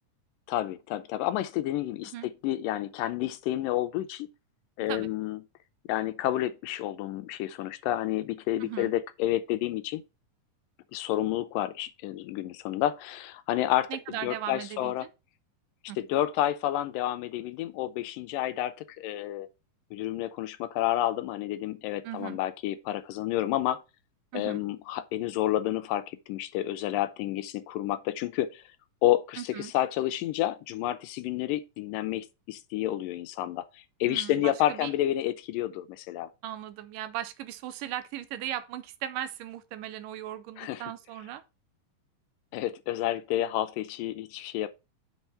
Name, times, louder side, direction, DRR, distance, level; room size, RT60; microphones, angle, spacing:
voice 1, 0.5-2.1 2.4-4.3 4.8-5.4 5.9-10.0 10.9-13.9 14.2-15.1 16.0-19.5 19.9-23.8 24.3-28.6 29.0-33.6 34.0-36.3 40.6-40.8 42.5-44.7, left 13 dB, 85° left, 2.3 m, -30 dB
voice 2, 8.6-8.9 13.9-15.1 15.9-16.0 22.0-22.4 24.3-24.6 29.4-29.7 34.1-34.9 36.4-41.4, right 12 dB, 85° right, 2.3 m, -37 dB
6.3 x 4.7 x 5.5 m
omnidirectional pair, 3.8 m